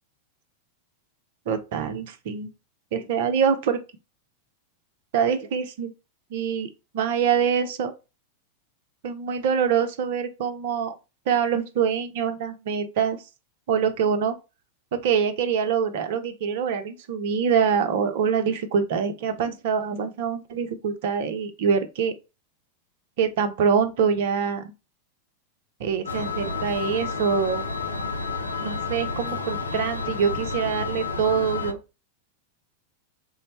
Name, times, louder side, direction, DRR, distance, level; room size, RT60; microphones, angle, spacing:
voice 1, 1.5-2.5 2.9-3.8 5.1-5.9 6.3-7.9 9.0-11.0 11.3-13.3 13.7-14.4 14.9-22.1 23.2-24.7 25.8-27.6 28.6-31.8, right 7 dB, 55° right, 0.6 m, -25 dB
sound 1, 26.1-31.7, left 4 dB, 80° left, 0.5 m, -30 dB
3.8 x 2.1 x 4.1 m
figure-of-eight pair, 90°, 0 cm